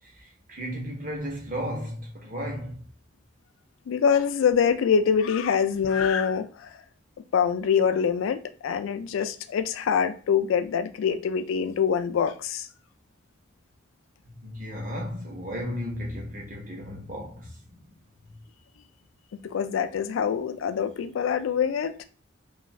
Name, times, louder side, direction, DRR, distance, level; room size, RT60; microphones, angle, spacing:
voice 1, 0.5-2.8 14.4-17.6, equal, 40° right, 0.8 m, -34 dB
voice 2, 3.9-6.7 7.3-12.7 19.4-21.9, left 7 dB, 85° left, 0.3 m, -24 dB
2.6 x 2.4 x 3.1 m
head